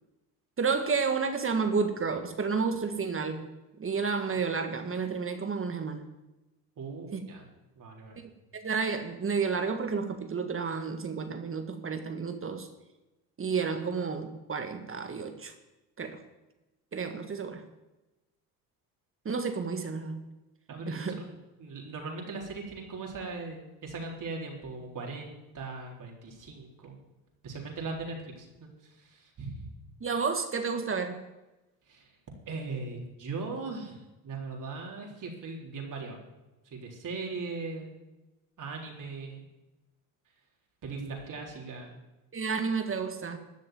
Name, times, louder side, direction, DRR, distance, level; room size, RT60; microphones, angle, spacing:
voice 1, 0.6-3.4 3.8-6.1 7.1-7.2 8.5-12.7 13.4-15.5 16.0-16.2 16.9-17.6 19.3-20.2 20.9-21.2 30.0-31.2 42.3-43.4, right 5 dB, 30° right, 7 dB, 1.7 m, -31 dB
voice 2, 6.8-7.4 7.8-8.2 20.7-27.0 27.4-29.7 31.9-32.1 32.5-36.2 36.7-37.9 38.6-39.4 40.8-41.9, right 3 dB, 45° right, 0 dB, 4.0 m, -39 dB
13.5 x 6.5 x 9.4 m, 1.0 s
supercardioid pair, 75°, 43 cm